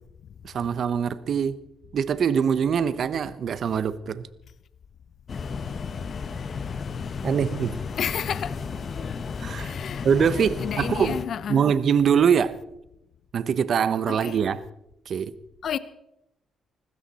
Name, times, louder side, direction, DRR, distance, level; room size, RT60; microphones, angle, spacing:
voice 1, 0.4-1.6 1.9-4.3 7.2-7.8 9.4-9.7 10.0-11.2 11.5-12.6 13.3-14.6 15.1-15.3, right 7 dB, 55° right, 0.8 m, -23 dB
sound 1, 5.3-11.3, left 5 dB, 45° left, 1.0 m, -33 dB
voice 2, 8.0-8.6 9.6-11.6 14.1-14.4 15.6-15.8, left 8 dB, 60° left, 0.6 m, -31 dB
19.5 x 15.5 x 4.2 m
cardioid pair, 90°, 0 cm